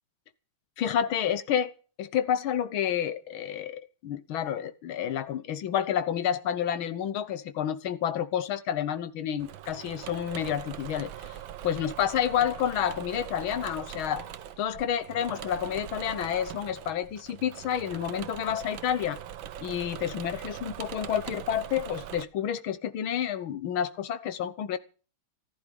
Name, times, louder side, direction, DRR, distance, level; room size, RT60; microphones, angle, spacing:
voice 1, 0.8-1.7 2.0-11.4 11.6-14.3 14.6-19.2 19.6-24.8, left 9 dB, 85° left, 14 dB, 1.9 m, -29 dB
Engine / Mechanisms, 9.4-22.3, right 11 dB, 75° right, 1.7 m, -42 dB
14.5 x 14.5 x 5.3 m, 0.37 s
omnidirectional pair, 2.2 m